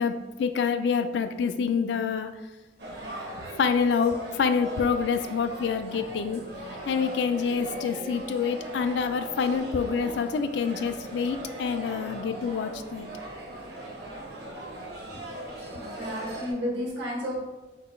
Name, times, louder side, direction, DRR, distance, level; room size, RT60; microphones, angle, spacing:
voice 1, 0.0-2.4 3.6-6.5 6.9-13.1, left 6 dB, 75° left, 9 dB, 0.3 m, -27 dB
sound 1, 2.8-16.5, right 1 dB, 65° right, 0.9 m, -39 dB
voice 2, 15.2-17.4, equal, 80° right, -4 dB, 1.3 m, -33 dB
3.9 x 2.2 x 4.4 m, 1.2 s
head